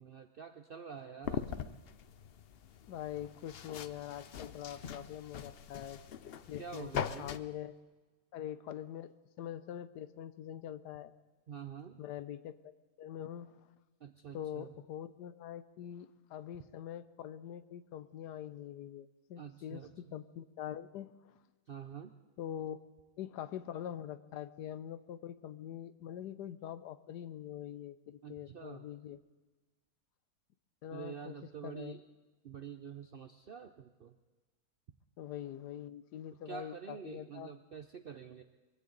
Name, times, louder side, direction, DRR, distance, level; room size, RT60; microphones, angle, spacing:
voice 1, 0.0-1.8 6.6-7.4 11.5-12.0 14.0-14.7 19.4-19.9 21.7-22.1 28.2-28.9 30.9-32.0 32.4-34.2 36.5-38.4, right 7 dB, 65° right, 7 dB, 0.5 m, -47 dB
sound 1, 1.2-7.4, left 8 dB, 65° left, 0.5 m, -42 dB
voice 2, 2.9-6.0 6.5-6.9 7.2-7.7 8.3-11.1 12.0-12.7 13.0-13.5 14.3-19.8 20.1-21.1 22.4-22.8 23.2-29.2 30.8-31.4 31.6-31.9 35.2-37.5, left 10 dB, 90° left, 14 dB, 1.3 m, -44 dB
22.0 x 16.0 x 3.9 m, 1.2 s
omnidirectional pair, 1.7 m